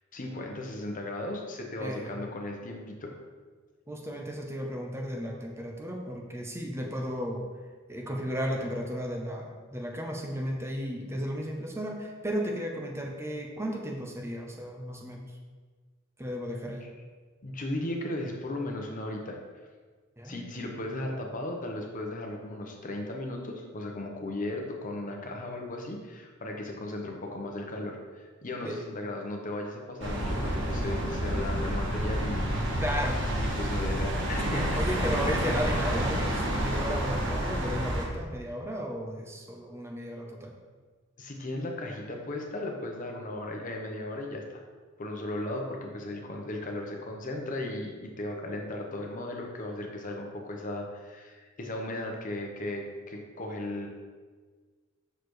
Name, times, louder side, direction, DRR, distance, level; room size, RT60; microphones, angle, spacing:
voice 1, 0.1-3.1 16.6-16.9 17.4-19.4 20.2-32.6 33.6-34.8 41.2-44.6 45.0-53.9, left 1 dB, 40° left, 1 dB, 0.9 m, -36 dB
voice 2, 1.8-2.1 3.9-7.4 7.9-15.3 16.2-16.9 20.2-20.7 28.6-28.8 32.8-33.2 34.5-40.5, equal, 15° right, 0 dB, 0.7 m, -34 dB
sound 1, 30.0-38.1, right 1 dB, 60° right, 1.3 m, -29 dB
6.7 x 6.5 x 3.2 m, 1.5 s
head